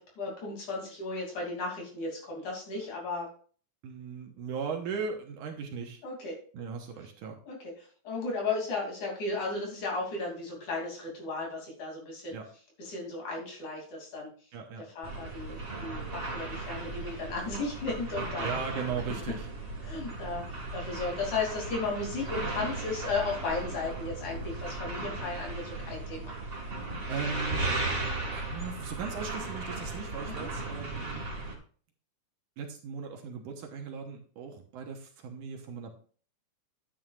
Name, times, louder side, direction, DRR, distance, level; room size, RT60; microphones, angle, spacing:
voice 1, 0.0-3.3 6.0-6.4 7.5-12.4 12.8-14.3 14.9-18.5 19.8-26.3 30.2-30.5, left 3 dB, 55° left, -1 dB, 4.4 m, -35 dB
voice 2, 3.8-6.0 6.5-7.4 12.3-12.5 14.5-14.9 18.4-19.5 27.1-27.6 28.3-31.2 32.6-36.0, right 5 dB, 70° right, 2 dB, 2.5 m, -38 dB
sound 1, 15.0-31.5, right 2 dB, 30° right, 1.1 m, -36 dB
11.0 x 9.2 x 2.5 m, 0.43 s
omnidirectional pair, 4.1 m